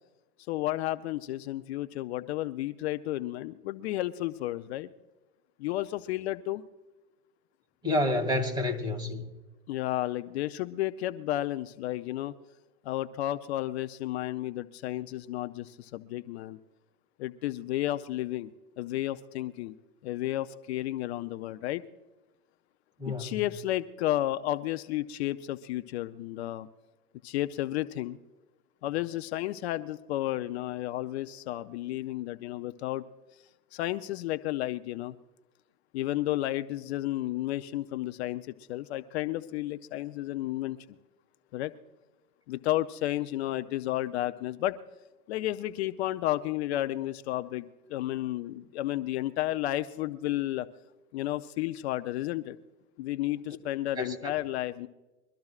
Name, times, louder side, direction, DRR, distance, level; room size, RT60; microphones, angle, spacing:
voice 1, 0.5-4.9 5.6-6.6 9.7-12.3 12.8-16.6 17.2-19.8 20.0-21.8 23.1-26.7 27.2-28.2 28.8-33.0 33.7-35.2 35.9-40.8 41.5-41.7 42.5-44.8 45.3-50.7 51.1-52.6 53.0-54.9, left 15 dB, 45° left, 0.6 m, -32 dB
voice 2, 7.8-9.2 23.0-23.4 54.0-54.3, left 1 dB, 10° right, 2.2 m, -29 dB
23.5 x 13.0 x 2.4 m
hypercardioid pair, 130°, 48 cm